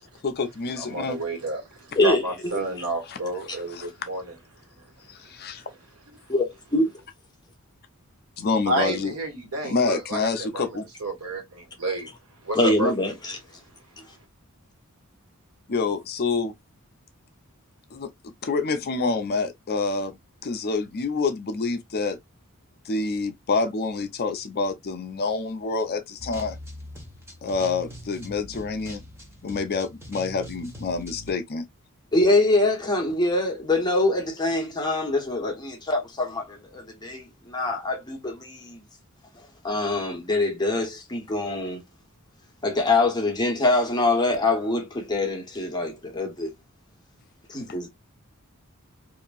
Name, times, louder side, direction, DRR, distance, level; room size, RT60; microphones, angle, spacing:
voice 1, 0.2-1.2 3.1-3.2 3.7-3.9 5.1-5.6 8.4-9.1 9.6-10.9 15.7-16.5 17.9-18.1 18.4-20.2 20.4-22.2 22.9-26.6 27.4-29.0 29.4-31.7, left 4 dB, 45° left, 0.5 m, -27 dB
voice 2, 0.8-4.3 4.8-4.9 5.2-5.3 8.7-12.1 12.4-12.9, right 2 dB, 80° right, 1.4 m, -30 dB
voice 3, 6.3-6.9 12.6-13.4 32.1-38.8 39.6-41.8 42.6-46.5 47.5-47.9, left 2 dB, 20° left, 0.9 m, -24 dB
sound 1, 26.2-31.3, equal, 10° right, 0.8 m, -42 dB
2.8 x 2.5 x 2.3 m
head